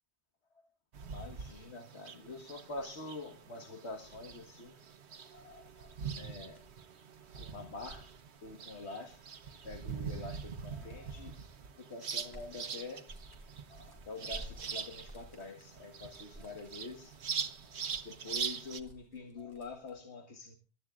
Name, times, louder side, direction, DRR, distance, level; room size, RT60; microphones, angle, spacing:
sound 1, 0.9-18.8, right 6 dB, 85° right, 1.3 m, -43 dB
voice 1, 1.0-4.8 5.3-6.6 7.3-8.1 8.4-9.2 9.6-11.4 11.7-13.1 13.7-17.1 18.0-20.6, left 3 dB, 85° left, 5 dB, 1.9 m, -46 dB
sound 2, 4.1-6.7 7.7-11.4 11.9-19.9, right 1 dB, 20° left, 5.1 m, -55 dB
26.0 x 13.5 x 2.5 m, 0.33 s
omnidirectional pair, 1.1 m